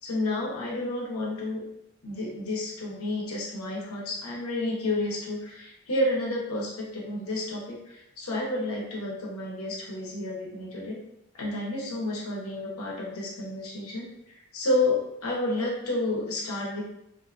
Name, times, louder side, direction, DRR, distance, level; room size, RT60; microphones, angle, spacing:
voice 1, 0.0-1.6 2.0-11.0 11.3-16.8, left 2 dB, 90° left, -3 dB, 0.7 m, -30 dB
2.6 x 2.3 x 2.4 m, 0.81 s
head